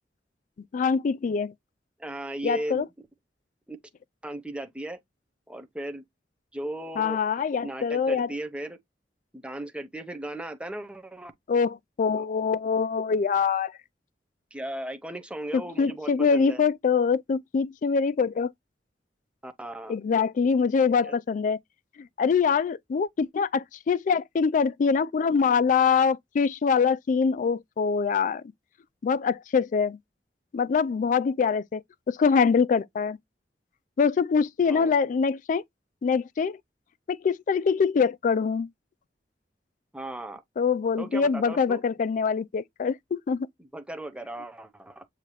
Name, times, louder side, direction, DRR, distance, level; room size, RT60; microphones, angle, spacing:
voice 1, 0.7-1.5 2.4-2.9 7.0-8.3 11.5-13.7 15.5-18.5 19.9-21.6 22.2-28.4 29.0-30.0 30.5-31.8 32.1-33.2 34.0-35.6 36.0-36.6 37.1-38.7 40.6-43.5, left 5 dB, 45° left, 0.3 m, -24 dB
voice 2, 2.0-2.9 3.7-3.8 4.2-5.0 5.5-6.0 6.5-7.2 7.6-8.8 9.3-11.3 12.1-12.3 14.5-16.6 19.4-20.0 21.0-21.2 34.7-34.9 39.9-40.4 41.0-41.8 43.6-45.1, right 1 dB, 5° right, 0.6 m, -36 dB
6.5 x 2.7 x 3.0 m
head